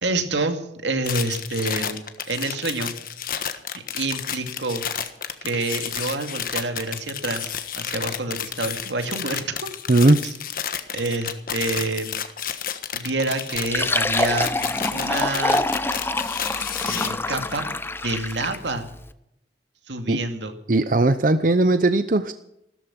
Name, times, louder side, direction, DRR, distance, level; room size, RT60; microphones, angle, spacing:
voice 1, 0.0-2.9 3.9-4.8 5.4-9.7 10.9-12.2 12.9-14.5 14.9-15.6 16.8-17.7 18.0-18.9 19.9-20.5, right 2 dB, 90° right, 6 dB, 2.3 m, -27 dB
sound 1, 1.0-17.1, left 8 dB, 50° left, 1.4 m, -31 dB
voice 2, 9.9-10.2 20.1-20.2 20.7-22.3, right 2 dB, 50° right, 10 dB, 0.7 m, -18 dB
Fill (with liquid), 13.6-18.7, left 2 dB, 15° left, 0.6 m, -26 dB
15.5 x 13.5 x 6.1 m, 0.81 s
head